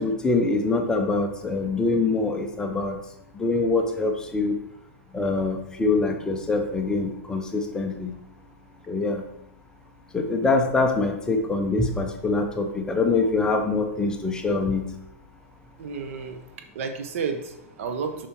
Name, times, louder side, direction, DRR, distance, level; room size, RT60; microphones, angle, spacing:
voice 1, 0.0-3.0 3.4-4.6 5.1-8.1 8.9-9.2 10.1-14.8, left 3 dB, 10° left, 4 dB, 0.7 m, -24 dB
voice 2, 15.8-16.4 16.7-18.3, right 5 dB, 65° right, 6 dB, 1.2 m, -31 dB
7.1 x 5.4 x 4.5 m, 0.80 s
hypercardioid pair, 150°, 8 cm